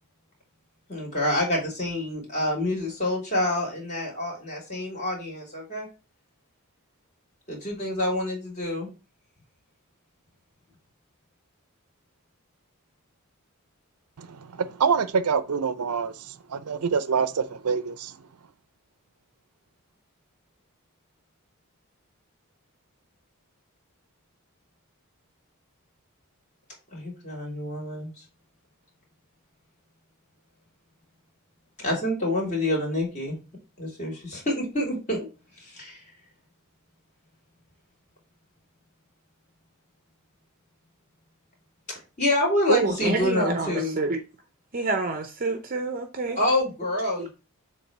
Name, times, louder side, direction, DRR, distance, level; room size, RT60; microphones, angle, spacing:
voice 1, 0.9-5.9 7.5-8.9 26.9-28.1 31.8-33.4 33.8-35.2 35.6-36.0 42.2-44.0 46.3-47.3, left 1 dB, 35° left, 3.0 m, -27 dB
voice 2, 14.2-18.2, right 6 dB, 85° right, 0.6 m, -26 dB
voice 3, 42.7-44.2 44.7-46.4 47.2-47.3, right 3 dB, 40° right, 0.6 m, -27 dB
7.2 x 3.2 x 4.6 m
head